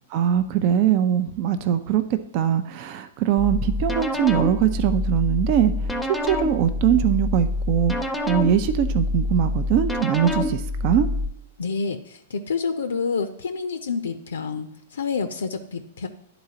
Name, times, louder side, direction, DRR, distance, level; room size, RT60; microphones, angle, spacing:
voice 1, 0.1-11.1, right 10 dB, 45° right, 10 dB, 0.5 m, -22 dB
sound 1, 3.4-11.3, left 2 dB, 5° left, 0.7 m, -26 dB
voice 2, 11.6-16.1, left 5 dB, 70° left, 8 dB, 0.5 m, -28 dB
11.0 x 4.0 x 2.8 m, 0.81 s
figure-of-eight pair, 105°, 0 cm